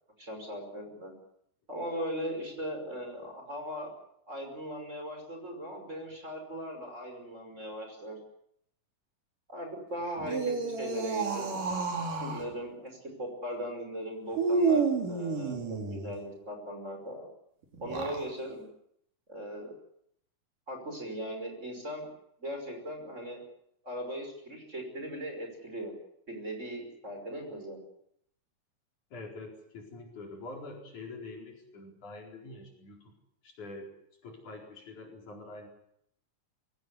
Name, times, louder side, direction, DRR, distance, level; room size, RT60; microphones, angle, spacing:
voice 1, 0.2-1.1 1.7-3.9 4.3-8.2 9.5-14.8 15.1-17.3 17.8-18.7 19.3-19.7 20.7-22.1 22.4-23.4 23.8-25.9 26.3-27.8, equal, 20° right, 4 dB, 5.8 m, -39 dB
sound 1, 10.2-12.5 14.3-16.1 17.7-18.3, right 4 dB, 85° right, 5.0 m, -30 dB
voice 2, 29.1-33.1 33.4-33.9 34.2-35.7, left 2 dB, 65° left, 1 dB, 5.8 m, -45 dB
23.0 x 17.0 x 9.6 m, 0.73 s
omnidirectional pair, 3.6 m